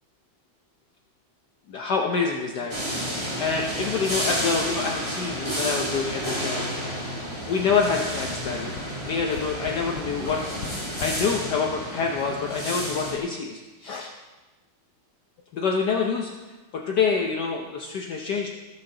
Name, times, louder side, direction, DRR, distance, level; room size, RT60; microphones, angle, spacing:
voice 1, 1.7-2.7 3.4-6.7 7.5-8.7 9.0-10.4 11.0-14.1 15.5-16.3 16.7-18.5, left 5 dB, 60° left, 1 dB, 1.3 m, -26 dB
sound 1, 2.7-13.2, equal, 15° right, 2.0 m, -31 dB
Tap, 8.2-11.2 12.0-12.1 12.4-12.5, left 5 dB, 85° left, 1.9 m, -39 dB
19.0 x 6.8 x 3.8 m, 1.2 s
omnidirectional pair, 2.3 m